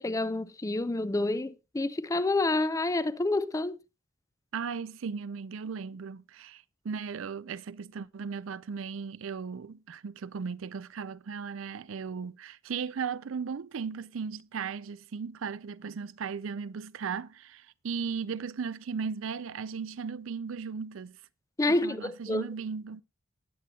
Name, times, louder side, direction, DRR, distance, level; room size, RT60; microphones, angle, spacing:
voice 1, 0.0-3.8 21.6-22.4, left 2 dB, 15° left, 0.4 m, -28 dB
voice 2, 4.5-21.2 21.7-23.0, right 6 dB, 70° right, 0.4 m, -36 dB
19.0 x 7.7 x 2.3 m
head